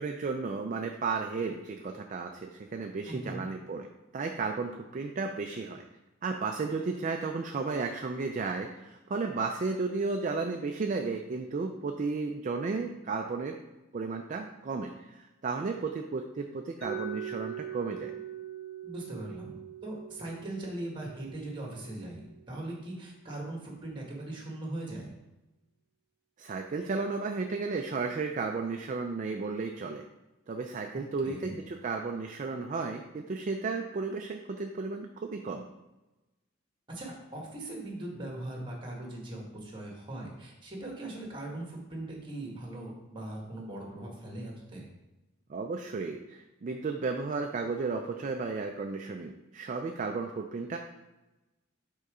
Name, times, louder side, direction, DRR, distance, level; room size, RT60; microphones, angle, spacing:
voice 1, 0.0-3.9 4.1-5.8 6.2-13.6 13.9-18.1 26.4-30.0 30.5-35.6 45.5-50.8, right 4 dB, 40° right, 4 dB, 0.4 m, -33 dB
voice 2, 3.1-3.5 18.8-25.0 31.2-31.6 36.9-44.9, right 1 dB, 25° right, -1 dB, 1.4 m, -40 dB
Mallet percussion, 16.8-22.6, right 8 dB, 60° left, 1.8 m, -42 dB
5.4 x 3.8 x 4.9 m, 1.0 s
head